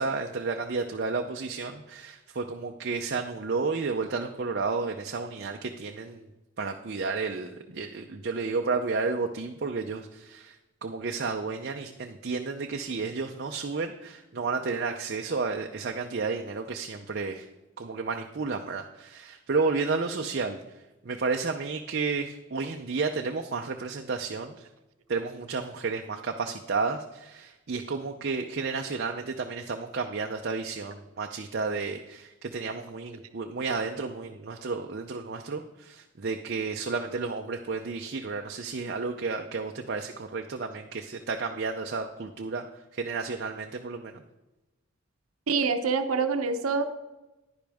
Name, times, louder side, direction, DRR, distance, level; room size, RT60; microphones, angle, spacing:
voice 1, 0.0-6.3 6.6-17.5 17.8-20.6 21.0-24.7 25.1-42.6 42.9-44.2, right 4 dB, 50° right, 3 dB, 0.6 m, -32 dB
voice 2, 45.5-46.8, right 4 dB, 90° right, 7 dB, 0.8 m, -26 dB
10.5 x 10.0 x 3.5 m, 1.0 s
head